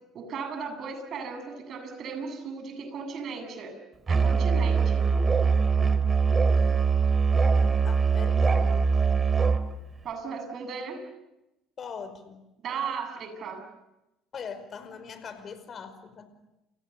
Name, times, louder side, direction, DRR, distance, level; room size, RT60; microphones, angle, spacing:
voice 1, 0.1-3.7 4.1-5.1 10.0-11.0 12.6-13.6, right 5 dB, 50° right, 6 dB, 8.0 m, -36 dB
Musical instrument, 4.1-9.7, right 5 dB, 30° right, 3.0 m, -22 dB
voice 2, 7.8-8.8 11.8-12.4 14.3-16.3, left 6 dB, 45° left, 11 dB, 5.2 m, -41 dB
29.5 x 29.0 x 6.9 m, 0.92 s
hypercardioid pair, 60°, 0 cm